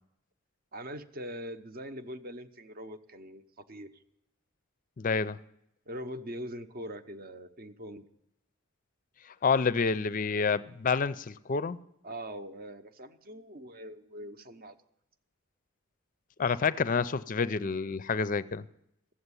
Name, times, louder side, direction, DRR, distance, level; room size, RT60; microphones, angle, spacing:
voice 1, 0.7-3.4 3.7-3.9 5.9-8.0 12.0-14.8 16.4-16.6, equal, 40° right, 0.8 m, -42 dB
voice 2, 5.0-5.4 9.4-11.8 16.4-18.6, left 5 dB, 40° left, 0.4 m, -28 dB
14.5 x 8.0 x 9.7 m
head